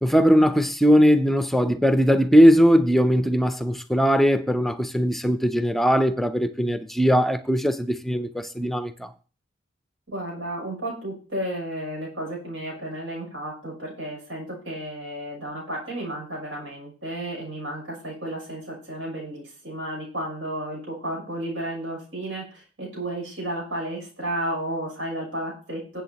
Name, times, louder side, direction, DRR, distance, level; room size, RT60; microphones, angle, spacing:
voice 1, 0.0-9.1, equal, ahead, 0.5 m, -19 dB
voice 2, 10.1-26.0, right 1 dB, 85° right, 6.9 m, -32 dB
20.0 x 8.0 x 2.9 m
head